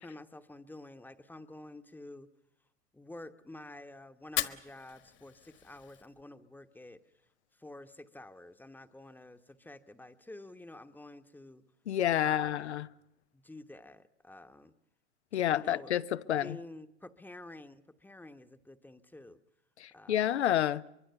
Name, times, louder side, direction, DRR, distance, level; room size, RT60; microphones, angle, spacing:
voice 1, 0.0-2.3 2.9-7.0 7.6-11.6 12.2-12.7 13.3-14.7 15.5-15.9 16.4-19.4 19.9-20.2, left 2 dB, 5° left, 1.1 m, -49 dB
Fire, 4.2-6.2, left 12 dB, 35° left, 1.5 m, -38 dB
voice 2, 11.9-12.9 15.3-16.6 19.8-20.8, left 11 dB, 80° left, 0.9 m, -29 dB
24.0 x 23.5 x 6.9 m
hypercardioid pair, 100°, 33 cm